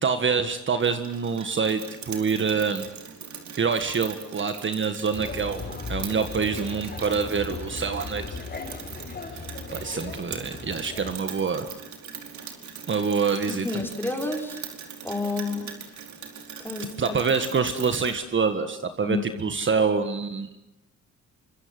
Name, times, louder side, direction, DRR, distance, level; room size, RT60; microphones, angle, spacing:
voice 1, 0.0-2.9 3.6-8.2 9.3-9.4 9.7-11.7 12.9-13.7 17.0-20.5, right 5 dB, 40° right, 8 dB, 1.7 m, -26 dB
Rain, 0.8-18.2, right 7 dB, 70° right, 4.8 m, -41 dB
sound 1, 5.1-11.1, left 4 dB, 35° left, 5.4 m, -37 dB
voice 2, 13.5-14.6 15.0-15.8 16.6-17.2 19.0-19.5, left 3 dB, 5° left, 2 dB, 5.2 m, -30 dB
27.0 x 25.0 x 7.9 m, 0.88 s
cardioid pair, 120°, 30 cm